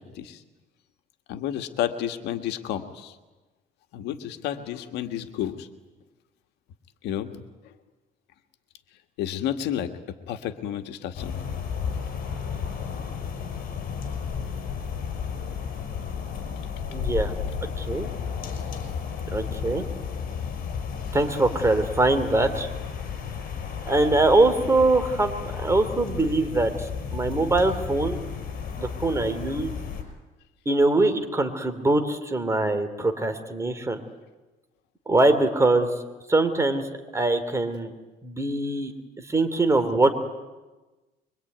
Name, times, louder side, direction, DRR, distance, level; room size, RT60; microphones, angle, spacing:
voice 1, 1.3-3.1 3.9-5.7 7.0-7.3 9.2-9.9 10.3-11.3, left 10 dB, 85° left, 7 dB, 1.9 m, -30 dB
sound 1, 11.1-30.0, left 6 dB, 55° left, 5.6 m, -33 dB
voice 2, 16.9-17.3 17.8-18.1 19.3-19.8 21.1-22.7 23.8-28.2 28.8-29.7 30.6-34.0 35.1-35.9 36.3-36.9 37.1-37.9 38.2-38.9 39.3-40.1, right 2 dB, 15° right, 8 dB, 3.1 m, -23 dB
24.5 x 24.0 x 9.5 m, 1.2 s
cardioid pair, 110°, 17 cm